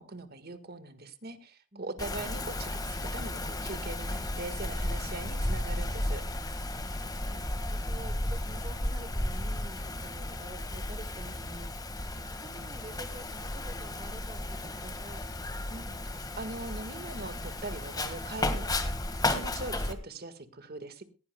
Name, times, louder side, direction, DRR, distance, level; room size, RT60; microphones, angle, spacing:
voice 1, 0.0-6.2 15.7-21.0, right 2 dB, 50° right, 11 dB, 1.6 m, -41 dB
Wind, 2.0-19.9, left 1 dB, 20° left, 1.7 m, -34 dB
voice 2, 6.7-11.7 12.4-15.3, right 1 dB, 30° right, 9 dB, 1.1 m, -48 dB
18.5 x 15.5 x 2.3 m, 0.32 s
head